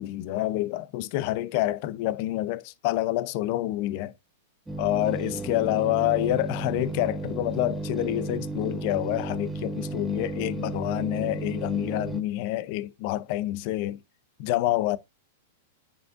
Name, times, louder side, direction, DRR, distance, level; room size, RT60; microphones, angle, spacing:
voice 1, 0.0-4.1 4.8-14.0 14.4-15.0, left 15 dB, 50° left, 0.6 m, -27 dB
sound 1, 4.7-12.2, right 2 dB, 10° right, 0.8 m, -34 dB
9.8 x 5.2 x 2.5 m
hypercardioid pair, 110°, 0 cm